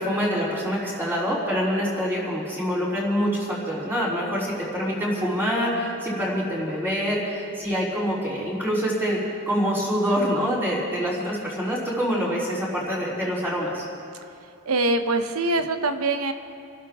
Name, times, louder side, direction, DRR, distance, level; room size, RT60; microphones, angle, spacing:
voice 1, 0.0-9.2 9.5-13.8, equal, 10° right, -7 dB, 3.6 m, -25 dB
voice 2, 14.7-16.3, right 2 dB, 85° right, 7 dB, 1.0 m, -23 dB
27.0 x 12.0 x 3.7 m, 2.6 s
head